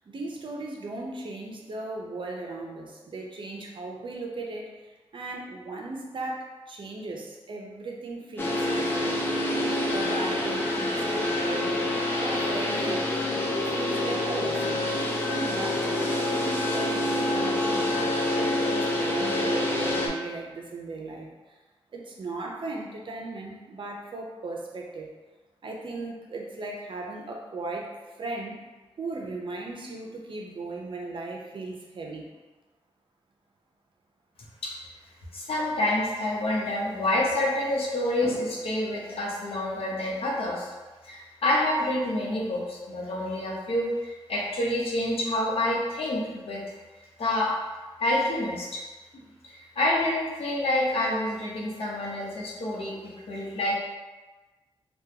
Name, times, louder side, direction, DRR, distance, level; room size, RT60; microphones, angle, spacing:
voice 1, 0.0-4.7 5.1-9.2 9.9-11.9 12.2-13.0 13.6-14.8 15.3-21.3 21.9-25.1 25.6-27.9 28.2-28.6 29.0-32.3, right 2 dB, 55° right, -1 dB, 0.6 m, -37 dB
sound 1, 8.4-20.1, left 1 dB, 20° left, 0.6 m, -27 dB
voice 2, 35.3-40.7 41.0-46.6 47.2-47.5 48.0-48.8 49.4-52.9 53.3-53.7, left 1 dB, 70° left, -4 dB, 0.8 m, -27 dB
3.5 x 2.3 x 2.8 m, 1.2 s
cardioid pair, 75°, 10 cm